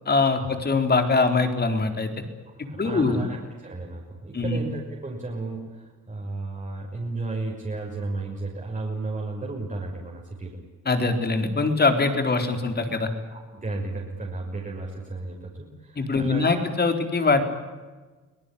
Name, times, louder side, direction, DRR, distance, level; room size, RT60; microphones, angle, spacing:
voice 1, 0.1-2.1 2.6-3.2 4.3-4.6 10.9-13.1 16.0-17.4, left 3 dB, 35° left, 7 dB, 4.1 m, -23 dB
voice 2, 2.6-10.6 13.3-16.7, right 2 dB, 25° right, -1 dB, 5.8 m, -34 dB
24.0 x 18.5 x 10.0 m, 1.3 s
cardioid pair, 90°, 30 cm